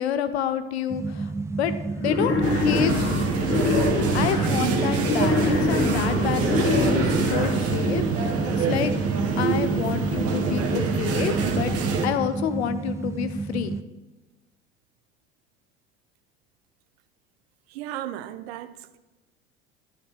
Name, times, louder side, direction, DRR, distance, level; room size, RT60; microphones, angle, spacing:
voice 1, 0.0-1.3 1.6-3.4 4.1-8.9 9.4-11.7 12.0-13.7, left 9 dB, 80° left, 0.8 m, -29 dB
sound 1, 0.9-13.8, right 3 dB, 10° right, 0.3 m, -31 dB
Wild animals, 2.0-4.5 5.0-7.5, left 3 dB, 45° left, 1.9 m, -25 dB
sound 2, 2.4-12.1, right 4 dB, 50° right, 1.5 m, -25 dB
voice 2, 17.7-19.0, right 12 dB, 70° right, 0.7 m, -35 dB
10.5 x 10.0 x 3.4 m
hypercardioid pair, 70°, 32 cm